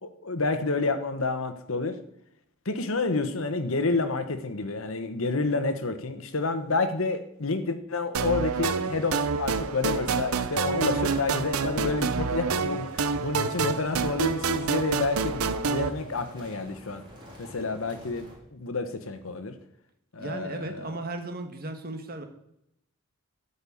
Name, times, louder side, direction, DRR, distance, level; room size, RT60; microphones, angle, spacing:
voice 1, 0.0-1.9 2.6-17.0 17.4-19.5 20.1-20.9, left 3 dB, 65° left, 9 dB, 1.2 m, -29 dB
sound 1, 8.1-15.9, right 5 dB, 80° right, 0.7 m, -27 dB
sound 2, 10.9-18.4, equal, 20° right, 3.4 m, -48 dB
voice 2, 20.2-22.2, right 2 dB, 45° right, 5 dB, 1.6 m, -36 dB
12.5 x 5.4 x 8.5 m, 0.79 s
head